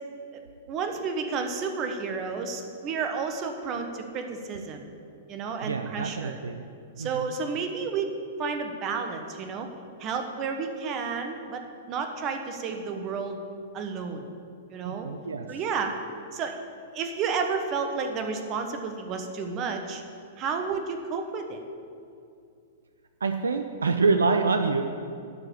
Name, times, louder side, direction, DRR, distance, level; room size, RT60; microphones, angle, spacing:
voice 1, 0.7-4.8 5.3-6.4 7.0-9.7 10.0-13.4 13.7-14.3 14.7-15.1 15.5-15.9 16.3-16.6 16.9-20.0 20.4-21.6, right 5 dB, 35° right, 5 dB, 1.2 m, -31 dB
voice 2, 5.6-6.6 7.0-7.3 14.8-15.5 23.2-24.8, right 4 dB, 75° right, 7 dB, 0.5 m, -26 dB
12.0 x 5.0 x 8.3 m, 2.4 s
figure-of-eight pair, 105°, 0 cm